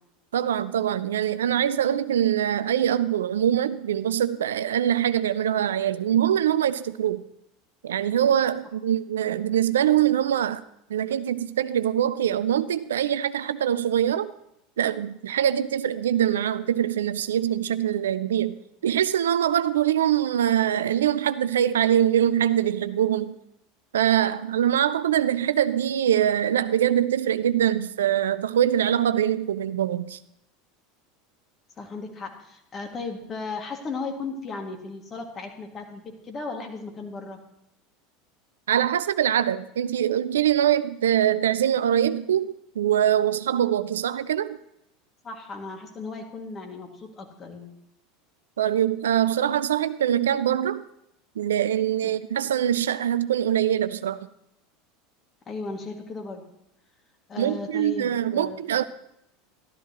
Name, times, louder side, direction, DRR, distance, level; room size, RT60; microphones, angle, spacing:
voice 1, 0.3-7.2 7.8-10.6 10.9-14.3 14.8-23.3 23.9-30.2 38.7-44.6 48.6-50.8 51.4-54.2 57.4-58.8, right 10 dB, 75° right, 0.4 m, -23 dB
voice 2, 31.8-37.4 45.2-47.7 52.0-52.1 55.5-56.4 57.3-58.6, left 3 dB, 30° left, 2.2 m, -36 dB
13.0 x 13.0 x 3.0 m
figure-of-eight pair, 80°, 0 cm